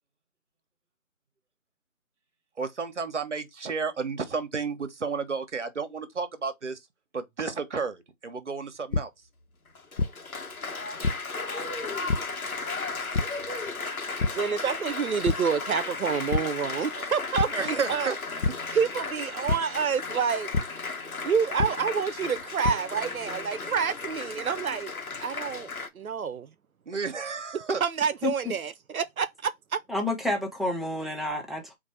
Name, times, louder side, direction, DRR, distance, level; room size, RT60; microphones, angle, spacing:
voice 1, 2.6-6.8 7.1-9.1 17.5-18.2 24.4-24.5 26.9-27.8, right 5 dB, 55° right, 1.1 m, -32 dB
sound 1, 8.9-9.0 10.0-10.1 11.0-11.1 12.1-12.2 13.1-13.2 14.2-14.3 14.7-14.9 15.2-15.4 16.3-16.4 17.4-17.5 18.4-18.5 19.5-19.6 20.5-20.6 21.6-21.7 22.4-22.7, left 4 dB, 60° left, 0.7 m, -24 dB
Applause, 9.7-25.9, left 4 dB, 90° left, 1.3 m, -35 dB
voice 2, 14.4-18.1 18.7-20.5 21.2-24.9 25.2-26.5 27.5-29.8, right 6 dB, 80° right, 0.6 m, -28 dB
voice 3, 29.9-31.8, left 2 dB, ahead, 0.5 m, -29 dB
4.5 x 2.5 x 4.3 m
figure-of-eight pair, 170°, 42 cm